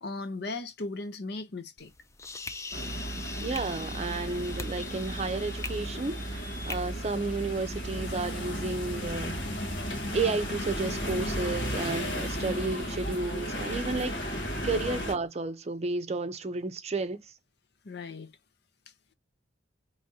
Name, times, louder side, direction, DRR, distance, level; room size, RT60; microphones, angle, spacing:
voice 1, 0.0-1.9 14.3-14.6 14.9-15.0 17.8-18.3, left 3 dB, 60° left, 0.7 m, -37 dB
sound 1, 1.8-6.8, left 3 dB, 15° left, 0.4 m, -42 dB
sound 2, 2.7-15.1, equal, 90° left, 1.4 m, -34 dB
voice 2, 3.4-9.4 10.1-17.2, right 3 dB, 35° right, 0.5 m, -32 dB
5.0 x 3.1 x 2.7 m
head